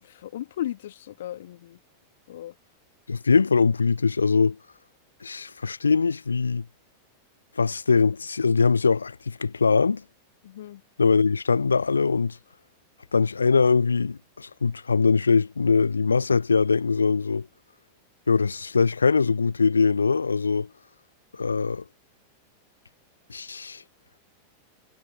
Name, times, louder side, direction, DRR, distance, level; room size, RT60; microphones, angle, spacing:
voice 1, 0.0-1.8 2.3-2.5 10.4-10.8, left 12 dB, 60° left, 2.3 m, -36 dB
voice 2, 3.1-4.6 5.2-6.6 7.6-10.0 11.0-12.4 13.1-17.5 18.3-20.7 21.3-21.8 23.3-23.8, left 5 dB, 75° left, 1.2 m, -22 dB
figure-of-eight pair, 90°, 0 cm